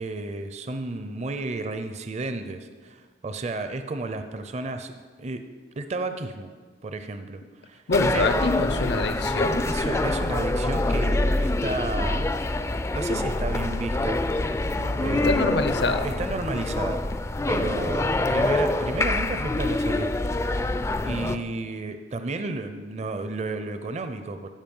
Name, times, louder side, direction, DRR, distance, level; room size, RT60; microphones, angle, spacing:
voice 1, 0.0-4.9 5.2-5.4 5.8-6.5 6.8-7.8 8.1-8.5 9.7-12.3 12.7-14.2 14.7-15.5 16.0-17.0 17.5-20.2 20.4-20.7 21.0-24.5, right 3 dB, 40° right, 8 dB, 0.5 m, -32 dB
voice 2, 7.9-9.7 15.2-16.1, left 3 dB, 70° left, 10 dB, 0.7 m, -25 dB
sound 1, 7.9-21.4, left 2 dB, 15° left, 0.3 m, -25 dB
14.5 x 5.2 x 5.4 m, 1.5 s
head